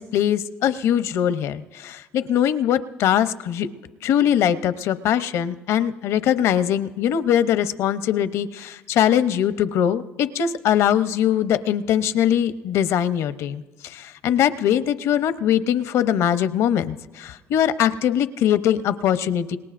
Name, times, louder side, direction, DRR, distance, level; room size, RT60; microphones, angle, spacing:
voice 1, 0.0-3.7 4.0-19.6, left 10 dB, 75° left, 13 dB, 0.7 m, -21 dB
26.5 x 20.5 x 2.5 m, 1.2 s
supercardioid pair, 80°, 5 cm